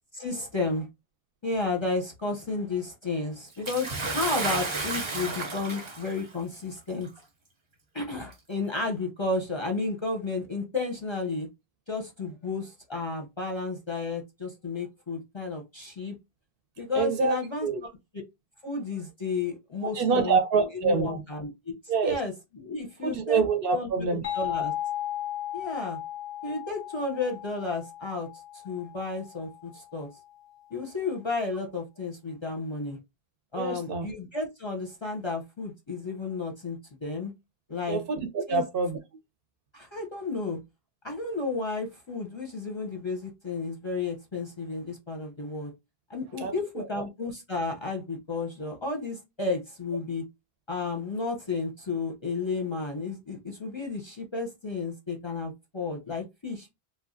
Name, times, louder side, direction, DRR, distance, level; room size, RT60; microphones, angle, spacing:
voice 1, 0.1-0.9 1.4-7.1 7.9-11.5 11.9-16.1 16.8-17.7 18.6-20.4 20.7-21.7 22.0-22.3 22.6-23.4 23.7-24.7 25.5-26.0 26.4-28.3 28.5-30.1 30.7-33.0 33.5-37.3 37.7-38.0 38.5-38.6 39.7-40.6 41.0-45.7 46.1-50.2 50.7-56.7, left 3 dB, 35° left, 0.5 m, -32 dB
Bathtub (filling or washing) / Splash splatter, 3.6-6.2 7.2-7.3 8.3-8.4, right 3 dB, 35° right, 0.6 m, -32 dB
voice 2, 16.9-17.8 19.8-21.2 21.9-22.2 23.0-24.2 24.5-24.6 33.5-34.1 37.9-39.0 46.4-47.0, right 5 dB, 70° right, 0.7 m, -26 dB
sound 1, 24.2-29.7, left 12 dB, 90° left, 0.8 m, -35 dB
3.1 x 2.2 x 2.5 m
omnidirectional pair, 1.0 m